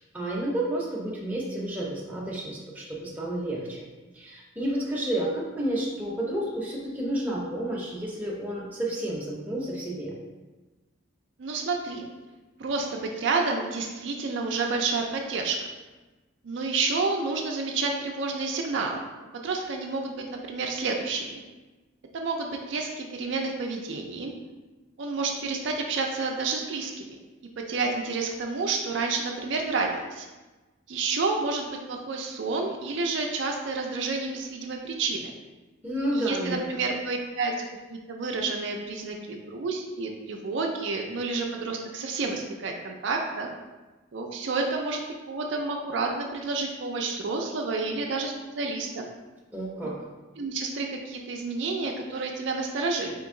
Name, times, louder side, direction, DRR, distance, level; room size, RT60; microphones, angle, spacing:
voice 1, 0.0-3.8 4.1-10.1 35.8-36.8 49.5-50.0, right 1 dB, 10° right, -5 dB, 0.7 m, -31 dB
voice 2, 11.4-12.1 12.6-15.6 16.4-19.0 19.3-21.4 22.1-24.3 25.0-26.9 27.6-30.3 30.9-35.3 36.1-43.5 44.1-45.0 45.3-49.1 49.8-49.9 50.4-53.1, right 3 dB, 60° right, 1 dB, 0.4 m, -29 dB
4.4 x 2.9 x 3.6 m, 1.2 s
head